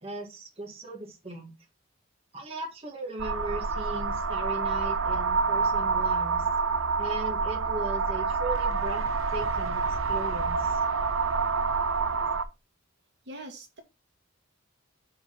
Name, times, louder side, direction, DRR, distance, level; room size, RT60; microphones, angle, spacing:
voice 1, 0.0-1.5 2.3-6.5 7.0-9.0 9.3-10.8, right 2 dB, 30° right, -2 dB, 1.8 m, -38 dB
sound 1, 3.2-12.4, right 4 dB, 85° right, 0.9 m, -27 dB
voice 2, 13.3-13.8, right 1 dB, 60° right, 3 dB, 2.2 m, -42 dB
7.7 x 4.0 x 5.8 m, 0.25 s
head